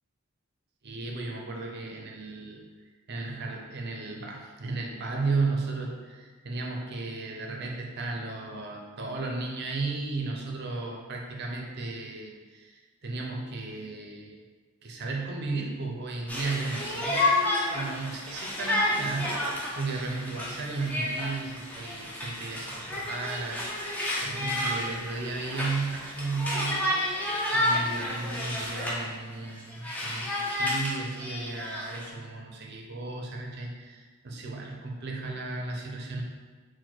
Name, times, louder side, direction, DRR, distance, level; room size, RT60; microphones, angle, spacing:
voice 1, 0.8-2.6 3.1-14.4 14.8-23.6 24.2-27.0 27.5-36.2, right 3 dB, 55° right, 1 dB, 0.6 m, -34 dB
Conversation, 16.3-29.1 29.4-32.1, left 1 dB, 5° left, 0.6 m, -30 dB
4.2 x 2.2 x 4.4 m, 1.4 s
head